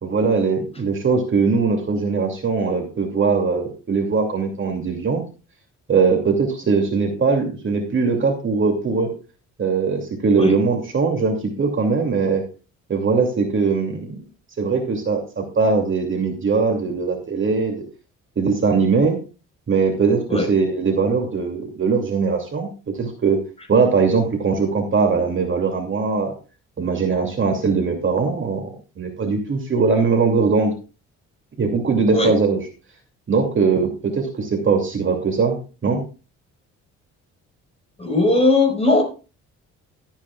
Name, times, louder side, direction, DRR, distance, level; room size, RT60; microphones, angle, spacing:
voice 1, 0.0-5.2 5.9-9.1 9.6-12.4 12.9-14.2 14.6-17.8 18.4-19.2 19.7-23.4 23.7-26.3 26.8-30.7 31.6-32.6 33.3-35.6 35.8-36.0, right 4 dB, 40° right, 3 dB, 2.7 m, -20 dB
voice 2, 38.0-39.0, left 2 dB, 20° left, 3 dB, 5.0 m, -18 dB
17.5 x 9.0 x 2.4 m, 0.33 s
cardioid pair, 90°, 30 cm